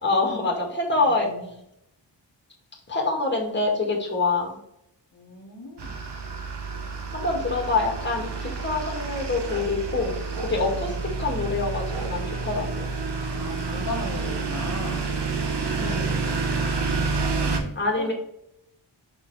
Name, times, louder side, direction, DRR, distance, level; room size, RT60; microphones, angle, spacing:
voice 1, 0.0-1.3 2.9-4.6 7.1-12.9 15.8-16.2 17.8-18.1, left 3 dB, 25° left, 0 dB, 1.9 m, -26 dB
voice 2, 1.0-1.5 5.1-6.1 10.8-11.0 13.2-15.0 17.1-18.1, left 2 dB, 40° left, -4 dB, 1.6 m, -37 dB
sound 1, 5.8-17.6, right 4 dB, 60° right, 1.2 m, -29 dB
6.3 x 4.3 x 4.2 m, 0.78 s
wide cardioid pair, 110°, 46 cm